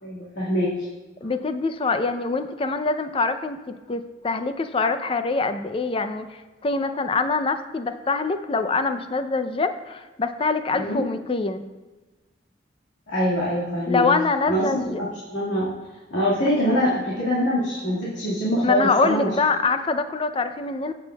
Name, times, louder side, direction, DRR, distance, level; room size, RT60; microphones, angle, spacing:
voice 1, 0.0-0.9 1.2-1.3 10.8-11.0 13.1-14.0 14.5-15.7 16.1-19.3, equal, 85° left, -8 dB, 1.9 m, -24 dB
voice 2, 1.2-11.6 13.9-15.0 16.7-16.8 18.6-20.9, left 3 dB, 30° left, 9 dB, 0.5 m, -24 dB
15.0 x 7.0 x 2.3 m, 1.2 s
head